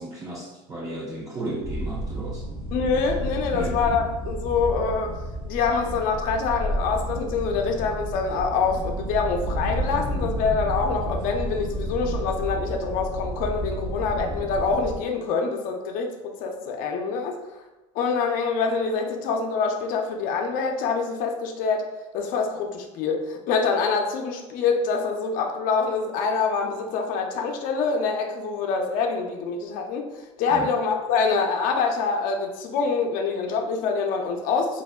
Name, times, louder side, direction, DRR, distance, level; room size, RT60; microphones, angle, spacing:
voice 1, 0.0-2.5 3.5-3.8 30.5-30.7, right 1 dB, 20° right, -4 dB, 0.4 m, -34 dB
sound 1, 1.6-15.0, equal, 85° right, 1.4 m, -31 dB
voice 2, 2.7-5.1 5.5-16.1 16.4-17.4 17.9-21.9 22.1-30.0 30.4-34.8, left 5 dB, 55° left, 3 dB, 0.4 m, -25 dB
3.3 x 2.0 x 2.2 m, 1.1 s
hypercardioid pair, 85°, 17 cm